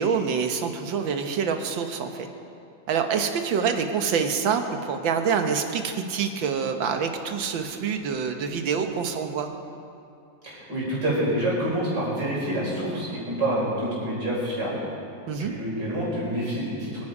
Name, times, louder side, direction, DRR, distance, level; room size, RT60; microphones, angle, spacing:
voice 1, 0.0-2.3 2.9-9.5 15.3-15.5, right 6 dB, 90° right, 6 dB, 1.8 m, -26 dB
voice 2, 10.4-14.8 15.4-16.9, right 1 dB, 65° right, -6 dB, 5.3 m, -27 dB
24.5 x 9.8 x 5.0 m, 2.6 s
omnidirectional pair, 2.0 m